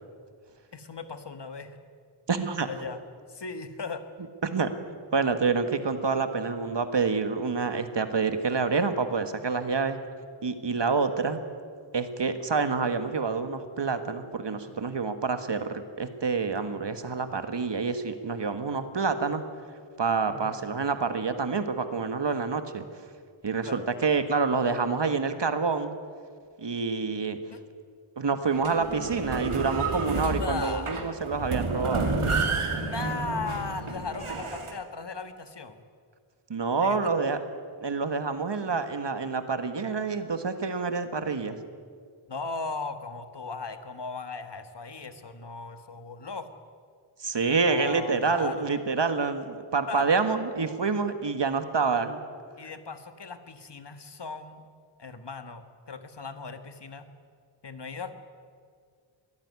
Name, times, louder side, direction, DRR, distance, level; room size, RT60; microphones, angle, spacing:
voice 1, 0.7-1.8 2.7-3.0 3.3-4.0 20.3-20.6 23.6-23.9 27.5-27.6 30.3-30.9 32.8-35.8 36.8-37.0 42.3-46.5 47.6-48.7 49.9-50.1 52.6-54.6 55.0-57.0 57.6-58.1, left 4 dB, 55° left, 9 dB, 1.6 m, -37 dB
voice 2, 2.3-2.7 4.4-4.7 5.1-10.0 10.4-11.4 11.9-19.4 20.0-22.8 23.4-25.9 26.6-27.4 28.2-32.2 36.5-37.4 37.8-41.6 47.2-52.2, right 4 dB, 55° right, 9 dB, 1.7 m, -27 dB
sound 1, 28.5-34.7, right 3 dB, 80° right, 2.4 m, -30 dB
22.5 x 14.5 x 9.6 m, 2.1 s
wide cardioid pair, 95°, 50 cm